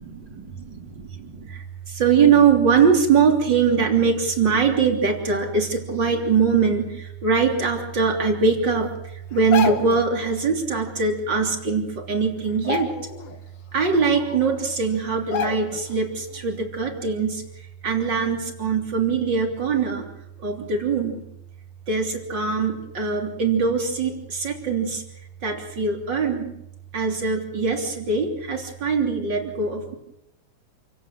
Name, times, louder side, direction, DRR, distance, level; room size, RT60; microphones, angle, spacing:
voice 1, 0.0-1.6 2.0-8.9 9.3-12.9 13.7-17.4 17.8-20.1 20.4-21.2 21.9-25.0 25.4-26.5 26.9-29.9, right 5 dB, 35° right, 2 dB, 3.8 m, -22 dB
sound 1, 9.3-10.1 11.5-11.6 11.9-12.2 12.5-13.4 13.8-13.9 14.6-14.7 15.3-15.9 16.3-16.5, left 6 dB, 55° left, 2.1 m, -28 dB
28.0 x 17.0 x 7.7 m, 0.84 s
omnidirectional pair, 3.4 m